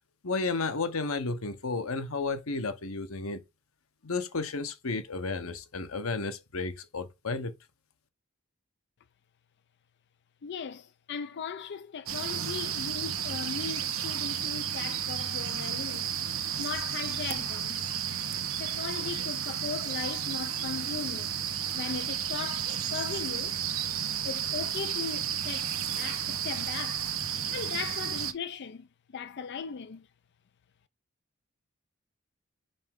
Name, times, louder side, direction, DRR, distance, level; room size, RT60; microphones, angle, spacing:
voice 1, 0.2-3.4 4.0-7.5, left 3 dB, 90° left, 1.0 m, -32 dB
voice 2, 10.4-16.1 16.6-17.8 18.6-21.3 21.7-23.5 24.2-27.1 27.5-28.9 29.1-30.1, left 6 dB, 55° left, 0.4 m, -38 dB
sound 1, 12.1-28.3, right 9 dB, 75° right, 0.9 m, -32 dB
5.3 x 4.8 x 3.6 m
head